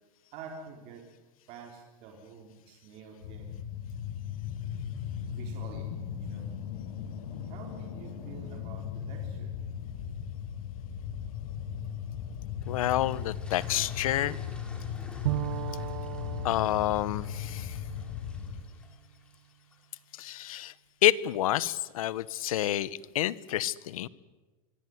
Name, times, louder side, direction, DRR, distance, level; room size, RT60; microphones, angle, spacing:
voice 1, 0.3-1.0 1.5-3.5 5.3-5.9 6.2-6.5 7.5-9.5 14.1-14.2, right 5 dB, 35° right, 1 dB, 3.8 m, -47 dB
sound 1, 3.2-18.6, left 8 dB, 55° left, 5.0 m, -37 dB
sound 2, 12.6-19.9, left 2 dB, 5° left, 3.7 m, -53 dB
voice 2, 12.7-14.4 16.4-17.8 20.1-20.7 21.0-22.9 23.1-24.1, left 13 dB, 75° left, 18 dB, 1.2 m, -28 dB
Bowed string instrument, 15.2-19.0, right 14 dB, 70° right, 0.8 m, -37 dB
25.0 x 22.5 x 9.6 m, 1.2 s
supercardioid pair, 180°, 18 cm